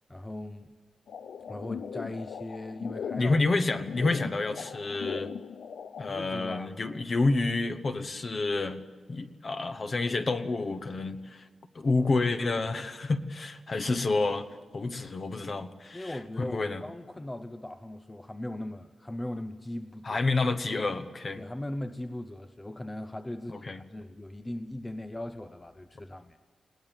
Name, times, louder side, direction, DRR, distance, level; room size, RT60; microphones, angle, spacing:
voice 1, 0.1-0.7 1.5-3.4 6.1-6.8 15.9-20.2 21.4-26.4, left 1 dB, 15° left, 10 dB, 0.6 m, -39 dB
sound 1, 1.1-6.1, left 7 dB, 75° left, 0.6 m, -39 dB
voice 2, 3.2-5.3 6.0-8.8 9.1-11.4 11.7-14.5 14.7-16.8 20.0-21.4 23.5-23.8, left 3 dB, 35° left, 8 dB, 1.0 m, -29 dB
21.0 x 18.0 x 8.9 m, 1.5 s
wide cardioid pair, 160°, 0 cm